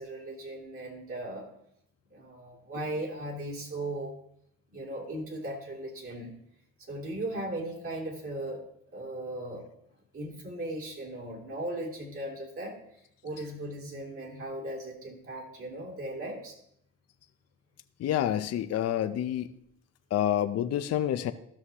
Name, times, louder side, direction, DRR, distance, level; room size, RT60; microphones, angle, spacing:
voice 1, 0.0-1.5 2.1-4.1 4.7-6.3 6.9-8.6 8.9-9.6 10.1-12.8 13.2-16.6, right 1 dB, 45° right, -1 dB, 2.9 m, -37 dB
voice 2, 18.0-19.5 20.1-21.3, left 11 dB, 55° left, 10 dB, 0.5 m, -28 dB
13.0 x 6.3 x 2.9 m, 0.72 s
cardioid pair, 90°, 30 cm